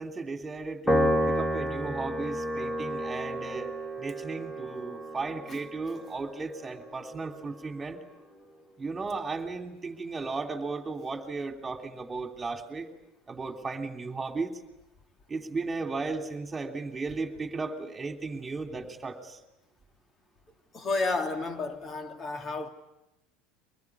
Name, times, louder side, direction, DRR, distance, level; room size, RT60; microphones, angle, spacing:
voice 1, 0.0-8.0 8.8-12.9 13.3-14.5 15.3-19.4, right 3 dB, 20° right, 5 dB, 3.1 m, -35 dB
Piano, 0.9-7.4, equal, 15° left, 2.4 m, -31 dB
voice 2, 20.7-22.7, left 3 dB, 35° left, 6 dB, 3.0 m, -31 dB
24.5 x 20.5 x 9.8 m, 0.92 s
hypercardioid pair, 80°, 0 cm